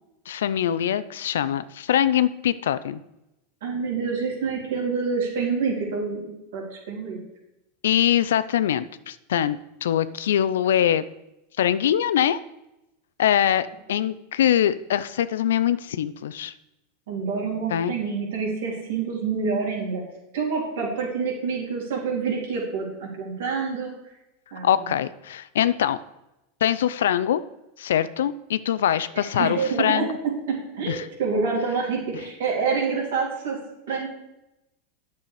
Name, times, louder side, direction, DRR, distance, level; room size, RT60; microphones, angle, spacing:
voice 1, 0.3-3.0 7.8-11.0 11.6-12.4 13.2-16.5 17.7-17.9 24.6-26.0 26.6-27.4 27.8-30.1 30.9-31.1, left 10 dB, 85° left, 15 dB, 0.5 m, -23 dB
voice 2, 3.6-7.2 17.1-20.0 20.3-23.9 24.5-24.9 29.3-33.6 33.9-34.1, right 5 dB, 80° right, -3 dB, 3.9 m, -27 dB
9.1 x 6.9 x 4.9 m, 0.91 s
supercardioid pair, 120°, 0 cm